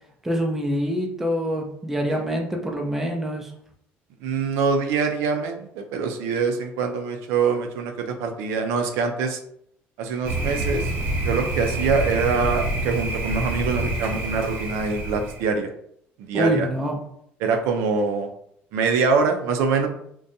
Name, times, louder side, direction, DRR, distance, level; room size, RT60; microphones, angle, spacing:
voice 1, 0.2-3.5 16.3-17.0, equal, 5° right, 0 dB, 0.4 m, -25 dB
voice 2, 4.2-9.4 10.0-10.9 11.2-15.7 16.3-16.7 17.4-18.3 18.7-19.9, right 5 dB, 80° right, 4 dB, 0.4 m, -24 dB
Thunder, 10.2-15.5, right 2 dB, 45° right, 0.8 m, -27 dB
2.6 x 2.2 x 2.6 m, 0.70 s
cardioid pair, 150°, 4 cm